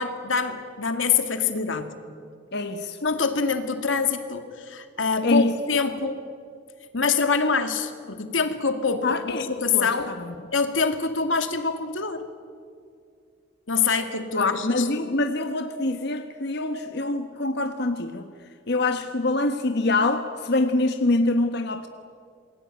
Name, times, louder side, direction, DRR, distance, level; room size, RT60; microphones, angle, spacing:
voice 1, 0.0-1.9 3.0-6.3 6.9-10.1 10.5-12.3 13.7-14.9, left 5 dB, 90° left, 7 dB, 2.3 m, -25 dB
voice 2, 2.5-3.0 5.2-5.5 9.0-10.3 14.3-18.3 18.7-21.9, left 2 dB, 60° left, 6 dB, 1.3 m, -25 dB
28.0 x 21.5 x 9.1 m, 2.2 s
head